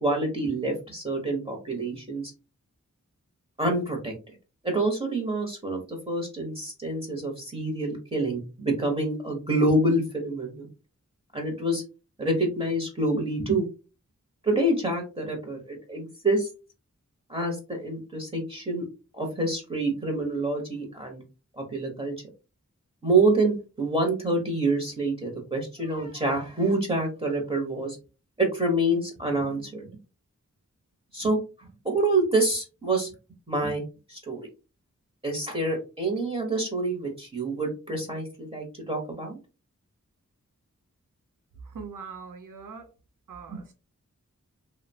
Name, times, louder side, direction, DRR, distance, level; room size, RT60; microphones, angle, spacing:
voice 1, 0.0-2.3 3.6-4.1 4.6-10.7 11.3-11.8 12.2-13.6 14.4-16.5 17.3-18.8 19.1-21.2 21.6-22.1 23.0-28.0 28.4-29.9 31.1-33.1 33.5-33.8 34.1-34.4 35.2-39.4 43.5-43.6, right 2 dB, 20° right, 0.9 m, -27 dB
voice 2, 41.6-42.9 43.3-43.7, right 5 dB, 85° right, 0.5 m, -41 dB
2.8 x 2.0 x 2.7 m
wide cardioid pair, 50°, 31 cm